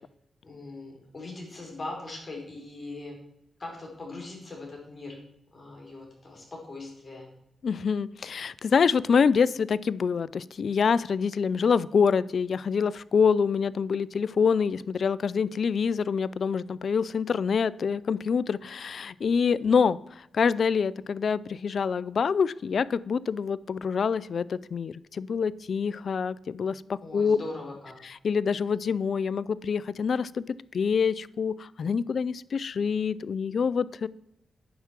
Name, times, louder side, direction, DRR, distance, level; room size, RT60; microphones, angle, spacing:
voice 1, 0.4-3.2 3.6-5.2 5.5-7.3 27.0-27.9, left 2 dB, 45° left, 0 dB, 4.7 m, -40 dB
voice 2, 7.6-27.4 28.0-30.4 30.7-34.1, left 6 dB, 65° left, 20 dB, 0.4 m, -26 dB
9.4 x 5.8 x 7.3 m, 0.81 s
supercardioid pair, 45°, 0 cm